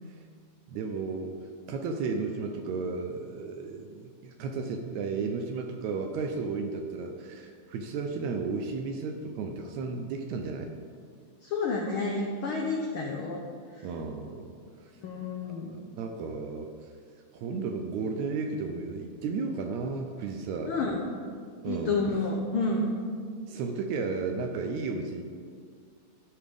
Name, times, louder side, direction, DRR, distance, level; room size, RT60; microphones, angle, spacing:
voice 1, 0.7-1.3 1.7-10.7 13.8-14.6 15.4-16.7 17.3-20.7 21.6-22.0 23.5-25.2, right 4 dB, 80° right, 4 dB, 1.9 m, -33 dB
voice 2, 11.4-13.4 13.7-13.9 15.0-15.8 20.7-21.0 21.6-22.9, left 3 dB, 80° left, -1 dB, 1.2 m, -30 dB
13.5 x 5.0 x 3.5 m, 2.1 s
omnidirectional pair, 3.3 m